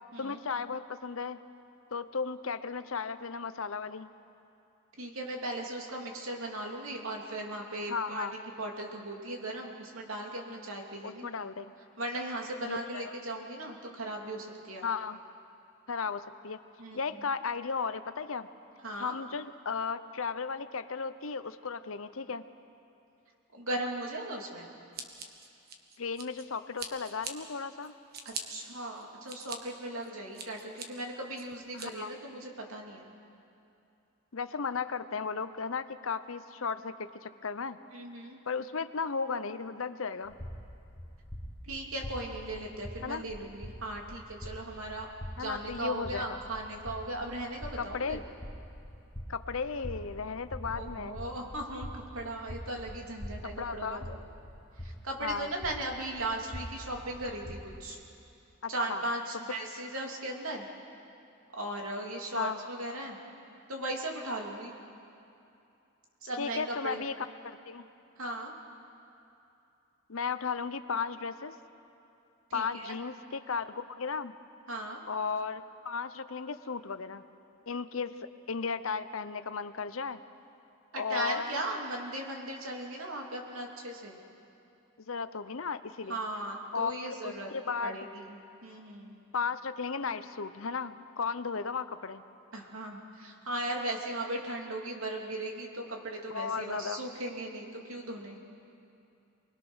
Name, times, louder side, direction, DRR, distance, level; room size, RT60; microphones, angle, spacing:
voice 1, 0.2-1.4 1.9-4.1 7.9-8.3 11.0-11.7 12.7-13.1 14.8-15.2 15.9-16.6 16.9-18.5 19.0-22.4 26.0-27.9 31.7-32.1 34.3-37.8 38.5-40.3 43.0-43.2 45.4-46.4 47.8-48.2 49.3-51.2 53.6-54.1 55.2-55.5 58.6-59.0 62.3-62.6 66.4-67.9 70.1-71.5 72.5-74.3 75.1-77.2 77.7-80.2 80.9-81.6 85.0-86.2 86.7-88.0 89.3-92.2 96.3-97.0, left 5 dB, 75° left, 12 dB, 0.8 m, -35 dB
voice 2, 5.0-11.3 12.0-14.8 16.8-17.2 18.8-19.1 23.5-24.7 28.2-33.1 37.9-38.4 41.6-45.1 45.4-48.2 50.7-54.2 54.8-58.0 58.7-60.7 61.5-63.2 63.7-64.7 66.2-67.0 68.2-68.5 72.5-73.0 74.7-75.0 80.9-84.2 86.1-87.5 87.8-89.2 92.5-98.4, right 1 dB, 85° right, 0 dB, 2.9 m, -37 dB
Scissors, 24.9-26.4 26.8-27.3 27.8-28.4 29.0-29.6 30.0-30.9 31.4-31.9, right 5 dB, 50° right, 1.7 m, -41 dB
sound 1, 40.2-57.8, equal, 20° left, 2.2 m, -45 dB
28.5 x 21.0 x 6.4 m, 2.7 s
head